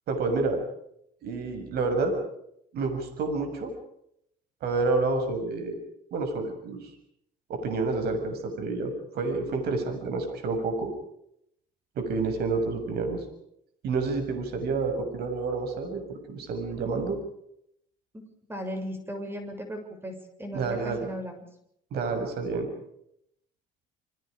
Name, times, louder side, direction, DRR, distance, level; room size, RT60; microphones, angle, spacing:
voice 1, 0.1-0.6 1.2-2.1 2.7-3.7 4.6-5.8 6.1-6.9 7.5-10.9 12.0-13.2 13.8-17.2 20.5-21.1 21.9-22.7, right 3 dB, 70° right, 6 dB, 7.0 m, -29 dB
voice 2, 18.5-21.5, equal, 15° right, 5 dB, 7.2 m, -36 dB
29.0 x 26.0 x 5.2 m, 0.74 s
cardioid pair, 110°, 17 cm